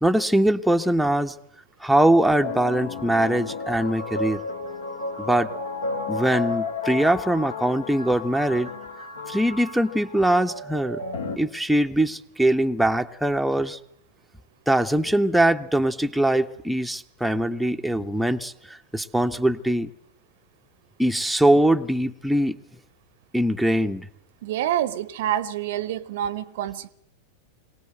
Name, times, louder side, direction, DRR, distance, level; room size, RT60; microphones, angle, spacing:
voice 1, 0.0-1.3 1.8-4.4 5.2-5.5 6.1-8.7 9.3-11.0 11.4-13.8 14.7-19.9 21.0-22.6 23.3-24.1, right 1 dB, ahead, 0.8 m, -22 dB
sound 1, 2.4-11.4, left 3 dB, 70° left, 2.2 m, -33 dB
voice 2, 24.4-26.9, right 11 dB, 55° right, 0.8 m, -27 dB
23.5 x 18.0 x 7.9 m
figure-of-eight pair, 90°, 0 cm